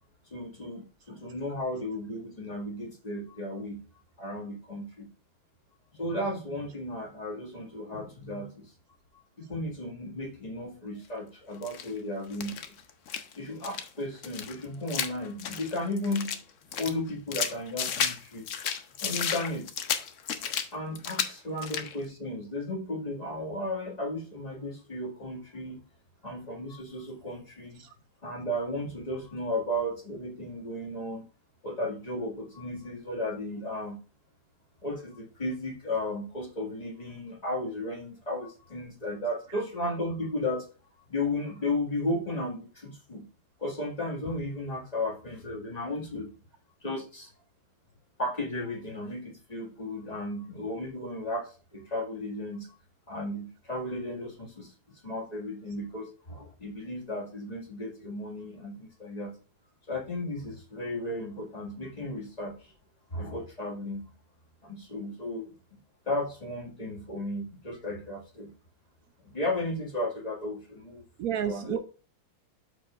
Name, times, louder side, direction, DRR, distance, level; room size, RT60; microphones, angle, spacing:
voice 1, 0.3-3.8 4.2-5.1 6.0-8.7 9.4-12.8 13.4-16.4 16.8-18.5 19.0-19.9 20.7-25.8 26.2-27.8 28.2-31.2 31.6-34.0 34.8-40.7 41.1-43.3 43.6-46.3 46.8-47.3 48.2-52.7 53.1-54.7 55.0-59.3 59.9-62.5 63.1-64.1 64.6-65.5 66.1-68.5 69.3-71.0 71.4-71.8, left 1 dB, 20° left, 2.0 m, -34 dB
sound 1, 11.6-11.9 12.3-13.3 13.6-13.9 14.2-16.4 16.7-18.2 18.5-20.7 21.0-21.3 21.6-22.0, left 7 dB, 60° left, 0.8 m, -33 dB
voice 2, 71.2-71.8, right 10 dB, 85° right, 0.7 m, -31 dB
12.5 x 4.8 x 2.5 m
omnidirectional pair, 2.1 m